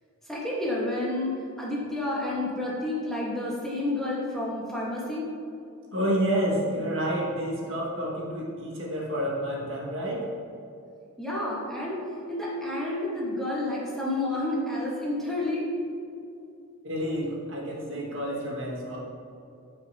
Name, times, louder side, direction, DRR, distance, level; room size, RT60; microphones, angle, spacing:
voice 1, 0.3-5.3 11.2-12.0 12.3-15.7, left 1 dB, ahead, -6 dB, 1.5 m, -30 dB
voice 2, 5.9-10.3 16.8-19.0, equal, 65° right, -4 dB, 1.9 m, -29 dB
14.0 x 5.4 x 2.9 m, 2.7 s
head